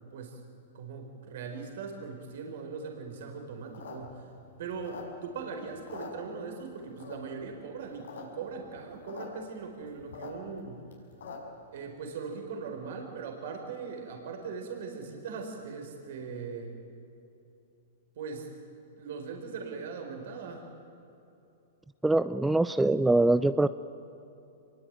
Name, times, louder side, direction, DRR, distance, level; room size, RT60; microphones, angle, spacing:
voice 1, 0.7-4.3 4.6-10.9 11.7-16.7 18.1-18.5 19.0-20.7, right 5 dB, 65° right, 3 dB, 4.7 m, -40 dB
sound 1, 3.6-5.4 5.7-6.6 7.0-7.4 7.8-8.2 8.5-8.6 8.7-9.3 9.6-11.6, left 5 dB, 85° left, 6.0 m, -44 dB
voice 2, 22.0-23.7, right 2 dB, 5° right, 13 dB, 0.5 m, -23 dB
25.5 x 22.0 x 9.1 m, 2.8 s
hypercardioid pair, 135°, 0 cm